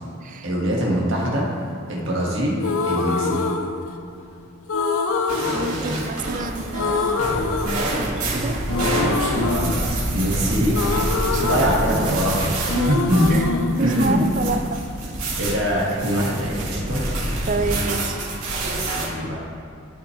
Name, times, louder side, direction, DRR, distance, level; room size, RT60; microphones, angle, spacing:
voice 1, 0.4-1.5 1.9-3.4 9.4-9.8 10.1-10.7 11.4-12.6 12.9-13.3 13.8-14.3 15.4-17.0 19.0-19.4, equal, 60° right, -4 dB, 1.6 m, -23 dB
sound 1, 2.6-4.2 4.7-6.4 6.7-8.3 8.7-12.4 12.7-14.7, left 4 dB, 70° left, 0.5 m, -25 dB
sound 2, 5.3-19.0, right 1 dB, 90° right, 2.1 m, -27 dB
voice 2, 5.5-7.4 7.6-9.5 11.2-11.6 12.8-14.9 17.5-18.2, right 3 dB, 35° right, 8 dB, 0.4 m, -29 dB
11.0 x 6.5 x 3.2 m, 2.5 s
head